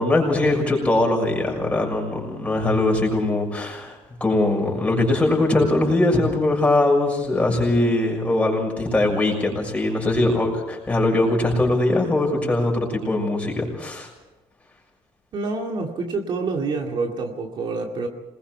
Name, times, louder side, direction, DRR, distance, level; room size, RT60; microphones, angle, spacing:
voice 1, 0.0-14.1, left 2 dB, 15° left, 0 dB, 6.5 m, -21 dB
voice 2, 15.3-18.1, right 3 dB, 50° right, 2 dB, 2.4 m, -27 dB
27.0 x 21.0 x 4.6 m, 1.1 s
cardioid pair, 150°, 10 cm